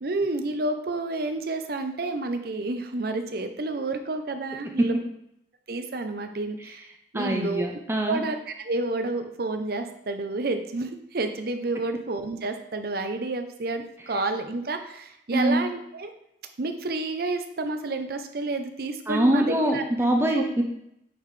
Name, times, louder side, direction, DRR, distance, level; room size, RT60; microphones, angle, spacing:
voice 1, 0.0-4.9 5.7-6.8 7.1-7.8 8.1-16.1 16.6-19.8, right 2 dB, 55° right, 7 dB, 0.6 m, -30 dB
voice 2, 7.1-8.2 15.3-15.6 19.1-20.6, right 1 dB, 15° right, 2 dB, 0.6 m, -23 dB
8.7 x 4.0 x 3.2 m, 0.78 s
head